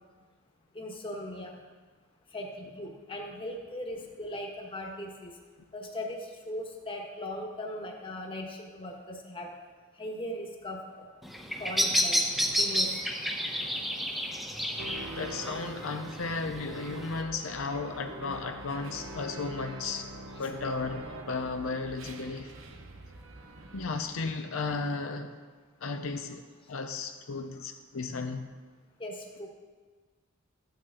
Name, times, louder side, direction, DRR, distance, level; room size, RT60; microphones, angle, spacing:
voice 1, 0.7-1.5 2.3-5.3 5.7-6.2 6.4-9.5 10.0-11.0 11.6-12.2 12.6-12.9 29.0-29.5, left 1 dB, 25° left, 1 dB, 1.4 m, -38 dB
Bird vocalization bird call bird song, 11.2-17.2, equal, ahead, 0.9 m, -31 dB
sound 1, 14.8-24.0, right 1 dB, 75° right, 1.0 m, -44 dB
voice 2, 15.2-20.0 20.4-22.5 23.7-25.3 25.8-26.4 26.7-28.5, left 3 dB, 80° left, 6 dB, 0.6 m, -34 dB
14.0 x 9.1 x 3.7 m, 1.4 s
head